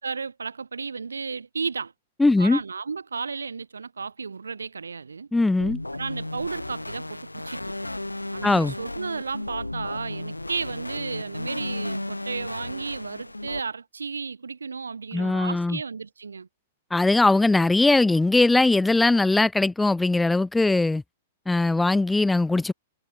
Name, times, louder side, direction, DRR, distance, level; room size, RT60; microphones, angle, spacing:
voice 1, 0.0-1.9 2.4-5.3 5.9-7.9 8.3-16.5, right 5 dB, 75° right, 0.8 m, -33 dB
voice 2, 2.2-2.6 5.3-5.8 8.4-8.7 15.1-15.8 16.9-21.0 21.5-22.7, left 2 dB, 5° left, 0.4 m, -20 dB
sound 1, 5.6-13.6, left 2 dB, 90° left, 1.1 m, -34 dB
figure-of-eight pair, 105°, 0 cm